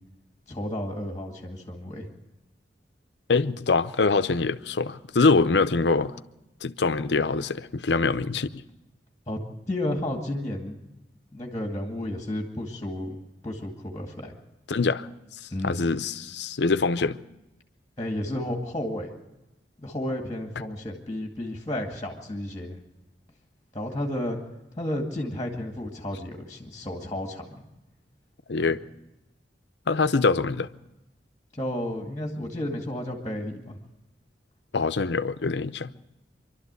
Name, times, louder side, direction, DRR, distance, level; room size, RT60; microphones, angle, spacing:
voice 1, 0.5-2.0 9.3-9.4 9.7-10.8 11.3-14.3 15.5-16.0 18.0-19.1 19.8-22.8 23.7-24.4 24.7-27.6 28.6-28.8 31.5-33.8, left 1 dB, 20° left, 2.1 m, -32 dB
voice 2, 3.3-6.2 6.6-8.6 14.7-15.1 15.4-17.2 28.5-28.8 29.9-30.7 34.7-35.9, left 4 dB, 75° left, 0.7 m, -24 dB
26.0 x 12.5 x 8.2 m
head